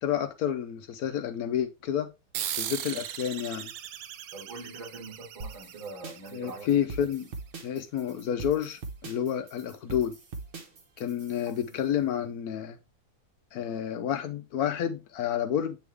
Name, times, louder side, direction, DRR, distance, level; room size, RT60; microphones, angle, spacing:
voice 1, 0.0-2.1 2.6-3.7 6.3-7.3 7.6-10.1 11.0-12.8 13.5-15.8, left 9 dB, 75° left, 0.8 m, -30 dB
sound 1, 2.3-7.3, right 10 dB, 90° right, 1.5 m, -38 dB
voice 2, 4.3-6.7 11.6-11.7, right 3 dB, 75° right, 3.4 m, -43 dB
sound 2, 5.4-11.7, right 3 dB, 50° right, 0.7 m, -42 dB
8.7 x 3.5 x 3.2 m
omnidirectional pair, 2.2 m